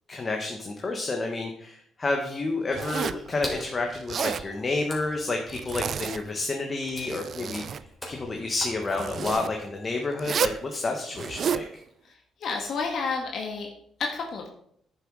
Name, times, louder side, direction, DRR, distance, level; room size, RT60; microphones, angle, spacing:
voice 1, 0.1-7.6 8.1-11.6, left 3 dB, 30° left, 2 dB, 1.6 m, -30 dB
Water / Splash splatter, 2.7-9.9, left 1 dB, 15° left, 3.7 m, -42 dB
Zipper (clothing), 2.7-3.3 3.9-4.5 5.5-6.4 6.8-7.8 8.9-9.5 10.2-10.6 11.1-11.7, right 8 dB, 55° right, 0.4 m, -31 dB
voice 2, 12.4-13.7 14.1-14.5, left 4 dB, 65° left, 1 dB, 1.8 m, -30 dB
9.7 x 7.3 x 5.0 m, 0.66 s
cardioid pair, 90°, 0 cm